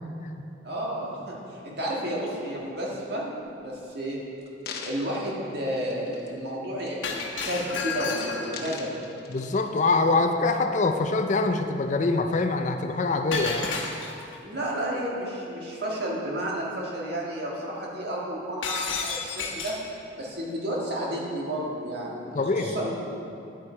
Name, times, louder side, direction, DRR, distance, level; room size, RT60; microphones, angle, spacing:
voice 1, 0.6-4.2 4.8-9.0 14.4-19.8 20.2-22.9, right 1 dB, 55° right, -3 dB, 1.8 m, -32 dB
sound 1, 3.4-3.8 4.4-6.5 6.8-7.1 7.4-7.9 8.3-10.0 10.6-10.7, left 4 dB, 55° left, 0.9 m, -43 dB
Shatter, 7.0-8.7 13.3-14.4 18.6-19.9, left 4 dB, 85° left, 1.2 m, -31 dB
voice 2, 9.3-13.7 22.3-22.8, left 3 dB, 40° left, 6 dB, 0.4 m, -24 dB
10.0 x 8.4 x 4.4 m, 2.7 s
head